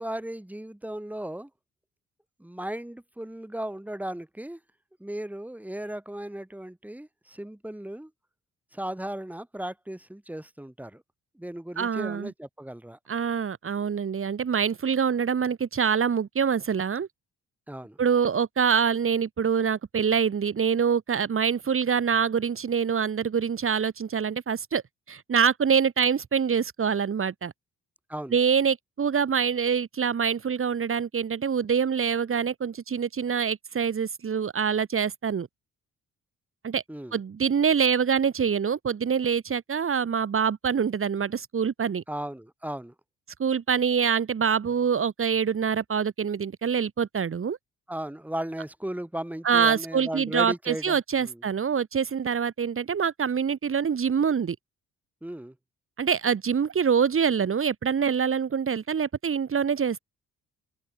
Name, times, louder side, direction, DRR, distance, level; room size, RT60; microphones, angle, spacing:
voice 1, 0.0-1.5 2.4-4.6 5.0-8.1 8.7-11.0 11.3-13.0 17.7-18.0 28.1-28.4 36.9-37.2 42.1-42.9 47.9-51.4 55.2-55.5, right 1 dB, 5° right, 6.4 m, -36 dB
voice 2, 11.8-12.3 13.1-17.1 18.0-24.8 25.1-27.5 28.3-35.5 36.6-36.8 37.1-42.0 43.4-47.6 49.4-54.6 56.0-60.0, right 7 dB, 45° right, 4.0 m, -25 dB
cardioid pair, 90°, 30 cm